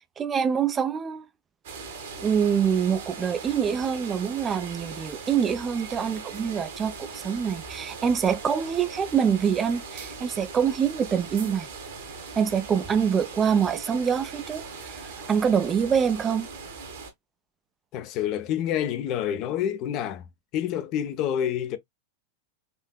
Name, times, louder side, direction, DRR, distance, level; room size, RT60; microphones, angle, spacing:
voice 1, 0.2-1.3 2.2-11.7 12.4-16.5, right 7 dB, 20° right, 0.4 m, -25 dB
sound 1, 1.6-17.1, right 4 dB, 55° right, 1.1 m, -40 dB
voice 2, 17.9-20.2 20.5-21.8, left 10 dB, 40° left, 0.5 m, -28 dB
4.3 x 2.6 x 2.2 m
figure-of-eight pair, 90°, 0 cm